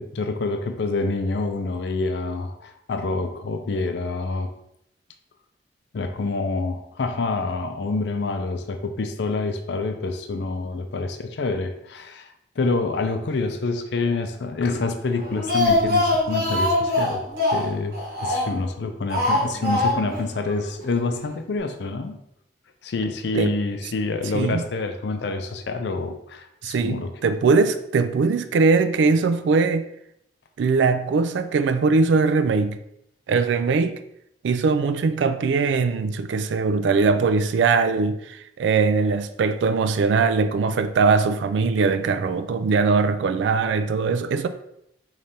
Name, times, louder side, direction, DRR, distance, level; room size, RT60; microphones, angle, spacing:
voice 1, 0.0-4.5 5.9-17.2 17.5-22.2 22.8-27.1, left 3 dB, 70° left, 0.4 m, -27 dB
Speech, 15.2-18.7 19.1-20.2 20.5-20.6 20.9-21.0, left 1 dB, 60° right, 1.3 m, -23 dB
voice 2, 26.6-29.9 30.6-32.8 33.3-34.0 34.4-44.5, right 4 dB, 85° right, 0.3 m, -21 dB
5.0 x 3.2 x 2.7 m
head